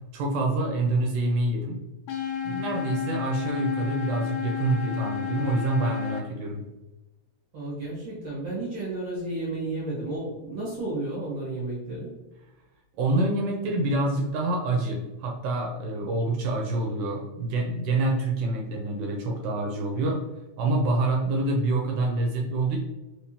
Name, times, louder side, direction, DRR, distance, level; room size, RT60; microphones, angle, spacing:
voice 1, 0.1-1.8 2.4-6.6 13.0-20.2 20.6-22.8, right 2 dB, 80° right, 0 dB, 2.1 m, -26 dB
sound 1, 2.1-6.2, left 8 dB, 80° left, 2.0 m, -31 dB
voice 2, 7.5-12.1, right 2 dB, 60° right, -7 dB, 2.0 m, -32 dB
5.0 x 3.4 x 2.8 m, 1.0 s
omnidirectional pair, 3.7 m